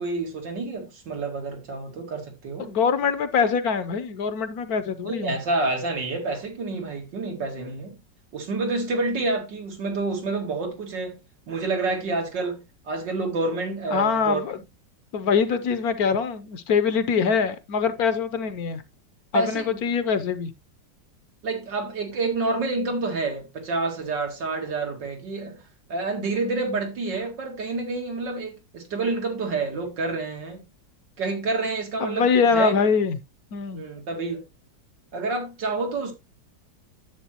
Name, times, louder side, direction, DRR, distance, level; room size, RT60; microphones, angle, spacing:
voice 1, 0.0-2.7 5.0-8.0 8.3-11.2 11.5-14.4 19.3-19.8 21.4-25.6 25.9-30.6 31.2-32.3 32.5-32.8 33.7-34.4 35.1-36.1, right 3 dB, 85° right, 2.8 m, -28 dB
voice 2, 2.6-5.3 13.9-14.6 15.1-18.8 19.3-20.5 32.0-33.2 33.5-33.8, left 6 dB, 65° left, 1.2 m, -23 dB
10.0 x 7.6 x 2.9 m
omnidirectional pair, 1.9 m